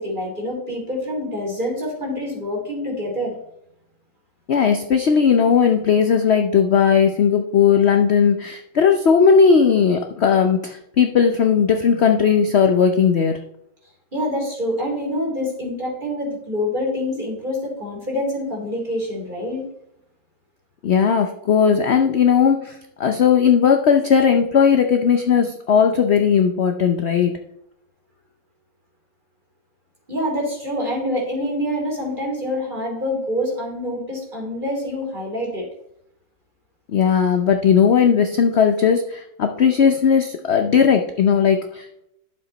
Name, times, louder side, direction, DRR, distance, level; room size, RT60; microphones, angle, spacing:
voice 1, 0.0-3.4 14.1-19.7 30.1-35.7, left 1 dB, 25° right, -1 dB, 3.2 m, -26 dB
voice 2, 4.5-13.3 20.8-27.3 36.9-42.0, left 7 dB, 60° left, 5 dB, 0.6 m, -17 dB
11.0 x 7.3 x 4.1 m, 0.78 s
omnidirectional pair, 2.0 m